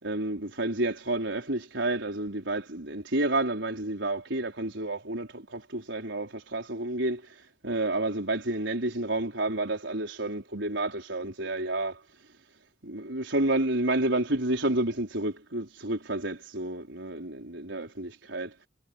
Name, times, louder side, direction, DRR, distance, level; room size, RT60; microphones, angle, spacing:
voice 1, 0.0-7.4 7.6-12.0 12.8-18.5, right 2 dB, 85° right, 4.6 m, -30 dB
head